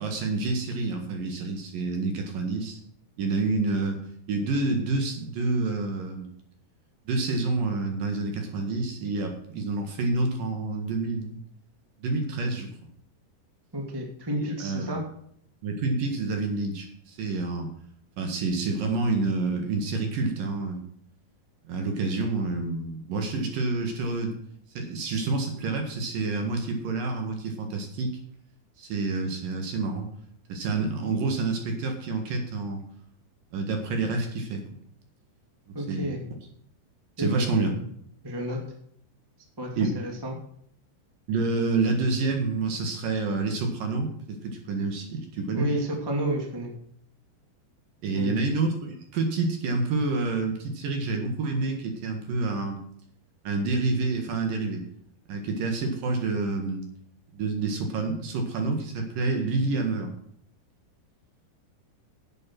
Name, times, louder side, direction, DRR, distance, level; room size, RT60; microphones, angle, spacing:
voice 1, 0.0-2.8 3.2-4.0 4.3-6.3 7.1-11.4 12.0-12.7 14.4-14.9 15.6-17.7 18.2-20.8 21.6-24.4 24.7-28.1 28.8-30.1 30.5-32.9 33.5-34.6 35.7-36.2 37.2-37.7 39.8-40.0 41.3-45.8 48.0-52.8 53.4-54.8 55.3-56.8 57.3-60.1, right 3 dB, 60° right, 4 dB, 3.0 m, -28 dB
voice 2, 13.7-15.0 35.7-36.2 37.2-37.8 38.2-38.6 39.6-40.3 45.5-46.7 48.1-48.4, equal, 10° right, 1 dB, 1.0 m, -31 dB
11.0 x 8.5 x 6.0 m, 0.66 s
omnidirectional pair, 5.2 m